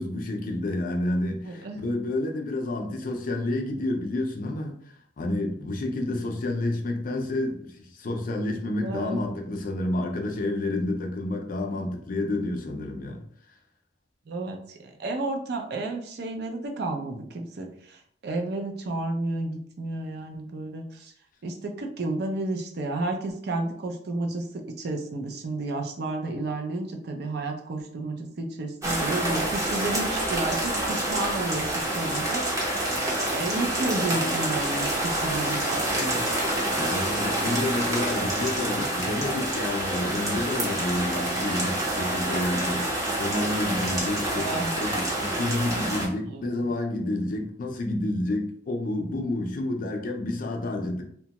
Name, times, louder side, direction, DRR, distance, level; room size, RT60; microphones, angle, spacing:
voice 1, 0.0-4.8 5.2-13.2 36.7-42.9 43.1-51.0, left 1 dB, 45° left, 3 dB, 0.4 m, -29 dB
voice 2, 1.4-1.8 8.8-9.3 14.3-21.1 21.4-32.9 33.3-36.3 44.3-44.7 46.3-46.7, right 2 dB, 60° right, 3 dB, 0.4 m, -32 dB
sound 1, 28.8-46.1, right 1 dB, 15° right, 0.6 m, -27 dB
2.8 x 2.2 x 2.8 m, 0.63 s
head